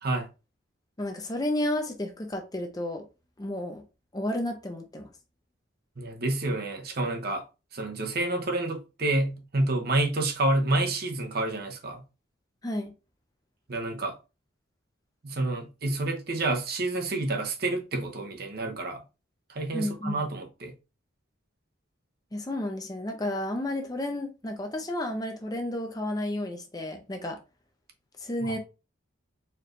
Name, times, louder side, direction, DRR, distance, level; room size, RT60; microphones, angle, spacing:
voice 1, 1.0-3.0 3.4-3.8 4.1-5.1 12.6-12.9 19.7-20.2 22.3-27.4 28.2-28.6, left 1 dB, 20° left, 0.5 m, -32 dB
voice 2, 6.0-7.4 7.7-12.0 13.7-14.1 15.2-19.0 19.5-20.7 28.4-28.5, right 2 dB, 50° right, 0.8 m, -29 dB
4.3 x 3.2 x 2.5 m
head